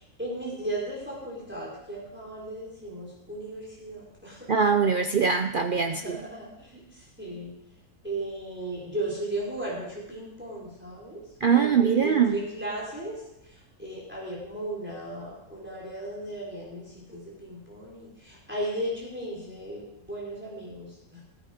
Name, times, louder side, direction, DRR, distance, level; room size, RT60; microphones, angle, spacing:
voice 1, 0.0-4.5 5.9-7.5 8.0-11.2 11.5-21.2, right 1 dB, 5° right, -4 dB, 4.1 m, -36 dB
voice 2, 4.5-6.0 11.4-12.4, right 6 dB, 65° right, 7 dB, 0.5 m, -22 dB
15.0 x 10.0 x 5.0 m, 0.86 s
omnidirectional pair, 1.6 m